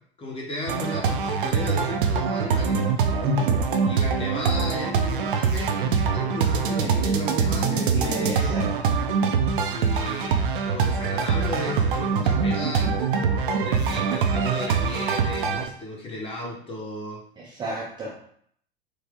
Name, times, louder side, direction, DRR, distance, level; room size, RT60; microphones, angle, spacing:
voice 1, 0.2-2.8 3.8-8.9 9.7-12.9 13.6-17.2, left 2 dB, 15° left, -2 dB, 1.0 m, -34 dB
sound 1, 0.7-15.7, right 6 dB, 55° right, 0.5 m, -24 dB
voice 2, 3.2-3.6 7.9-9.0 17.4-18.1, left 1 dB, 15° right, -5 dB, 0.6 m, -31 dB
4.5 x 2.0 x 3.5 m, 0.64 s
figure-of-eight pair, 90°, 32 cm